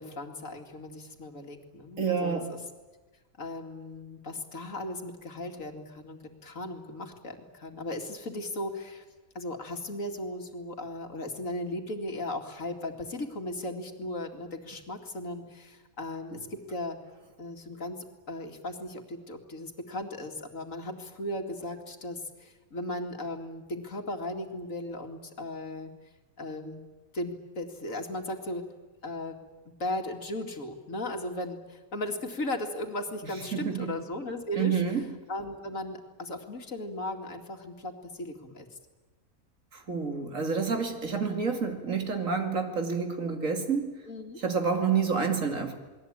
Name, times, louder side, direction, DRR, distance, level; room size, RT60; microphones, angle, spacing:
voice 1, 0.0-2.6 3.4-9.0 9.3-17.0 17.4-18.0 18.3-25.9 26.4-26.8 27.1-28.6 29.0-29.4 29.8-38.7 44.1-44.4, left 1 dB, 65° left, 4 dB, 2.7 m, -37 dB
voice 2, 2.0-2.5 33.5-33.9 34.6-35.0 39.7-43.9 44.4-45.7, right 5 dB, 65° right, 5 dB, 2.8 m, -28 dB
28.5 x 21.0 x 8.8 m, 1.2 s
omnidirectional pair, 1.5 m